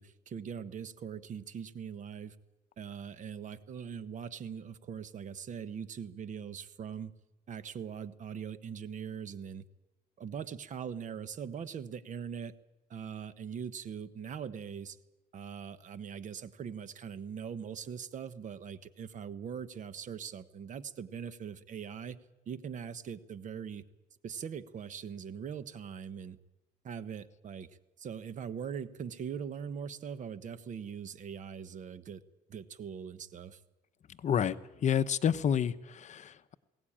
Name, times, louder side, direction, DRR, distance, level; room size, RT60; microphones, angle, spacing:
voice 1, 0.0-2.4 2.8-7.1 7.5-9.6 10.2-12.5 12.9-15.0 15.3-22.2 22.5-23.8 24.2-26.4 26.8-32.2 32.5-33.6, right 7 dB, 50° right, 13 dB, 1.2 m, -41 dB
voice 2, 34.2-36.5, left 8 dB, 45° left, 13 dB, 0.8 m, -29 dB
21.0 x 17.5 x 8.8 m, 1.0 s
cardioid pair, 110°, 17 cm